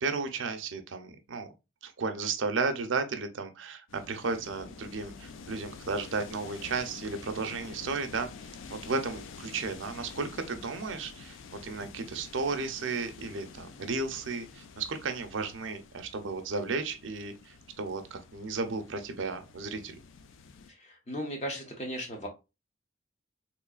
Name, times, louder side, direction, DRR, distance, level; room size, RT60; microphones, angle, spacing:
voice 1, 0.0-1.5 1.8-8.3 8.7-11.4 11.6-20.0, right 4 dB, 80° right, 0.6 m, -34 dB
sound 1, 3.9-20.7, left 5 dB, 80° left, 0.4 m, -48 dB
voice 2, 20.8-22.3, equal, 35° left, 0.8 m, -36 dB
3.7 x 3.0 x 2.3 m
head